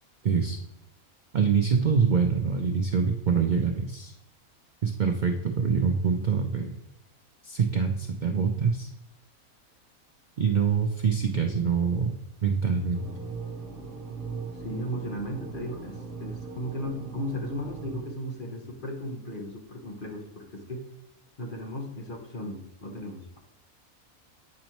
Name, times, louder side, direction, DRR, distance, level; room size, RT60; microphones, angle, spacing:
voice 1, 0.2-0.6 1.3-4.1 4.8-6.8 7.4-8.9 10.4-12.1 12.4-13.0, right 6 dB, 75° right, 4 dB, 0.4 m, -25 dB
sound 1, 12.9-18.0, right 4 dB, 45° right, 1.1 m, -39 dB
voice 2, 14.6-20.8 21.4-23.4, equal, 40° left, 1 dB, 1.1 m, -36 dB
8.5 x 5.2 x 3.0 m, 0.90 s
omnidirectional pair, 1.5 m